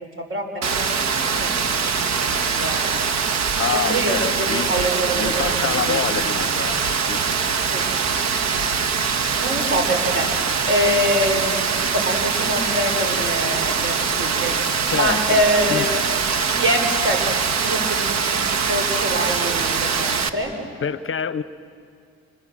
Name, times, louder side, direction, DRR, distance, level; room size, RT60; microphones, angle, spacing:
voice 1, 0.2-0.9 1.2-2.9 3.7-6.5 7.7-7.9 9.4-10.3 10.6-14.6 14.9-15.9 16.6-17.2 17.6-18.4 18.7-20.5, equal, 45° right, 4 dB, 5.3 m, -25 dB
Rain, 0.6-20.3, right 6 dB, 60° right, 1.5 m, -23 dB
voice 2, 3.6-4.7 5.2-7.2 14.9-15.4 15.7-15.8 20.8-21.4, left 8 dB, 45° left, 15 dB, 0.8 m, -26 dB
30.0 x 26.0 x 7.7 m, 2.4 s
cardioid pair, 90°, 30 cm